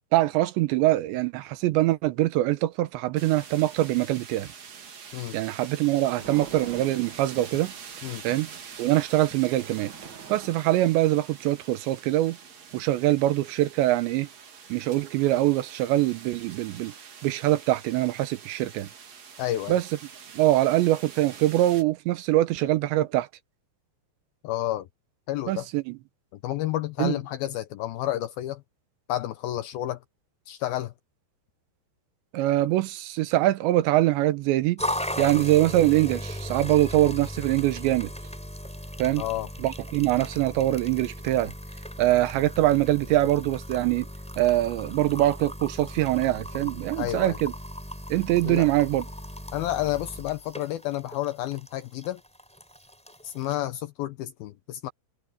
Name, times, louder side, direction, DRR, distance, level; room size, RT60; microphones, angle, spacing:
voice 1, 0.1-4.5 5.3-7.7 8.2-8.5 8.8-9.9 10.3-12.4 12.7-14.3 14.7-16.9 17.2-18.9 19.7-19.8 20.3-23.3 25.5-26.0 27.0-27.2 32.3-34.8 35.2-38.1 39.0-39.2 39.6-41.5 42.0-44.1 44.4-47.5 48.1-49.1, right 15 dB, 85° right, 3.3 m, -23 dB
sound 1, 3.2-21.8, right 6 dB, 45° right, 3.0 m, -45 dB
sound 2, 5.1-10.5, right 5 dB, 70° right, 1.0 m, -47 dB
voice 2, 19.4-19.8 24.4-24.9 25.3-25.7 26.4-28.6 29.1-30.0 30.5-30.9 39.2-39.5 47.0-47.4 48.4-48.7 49.5-52.2 53.2-54.9, left 14 dB, 80° left, 2.3 m, -30 dB
sound 3, 34.8-53.6, equal, ahead, 4.2 m, -37 dB
omnidirectional pair, 5.0 m